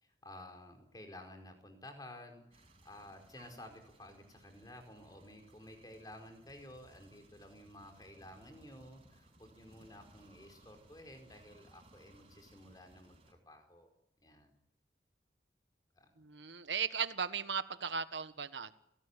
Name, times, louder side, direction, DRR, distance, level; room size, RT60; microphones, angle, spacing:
voice 1, 0.0-13.9 14.2-14.5 16.0-16.1, left 1 dB, 20° left, 4 dB, 4.9 m, -53 dB
sound 1, 2.5-13.3, right 1 dB, 30° right, 6.3 m, -63 dB
voice 2, 16.2-18.7, right 6 dB, 90° right, 11 dB, 1.4 m, -37 dB
30.0 x 18.5 x 10.0 m, 0.79 s
head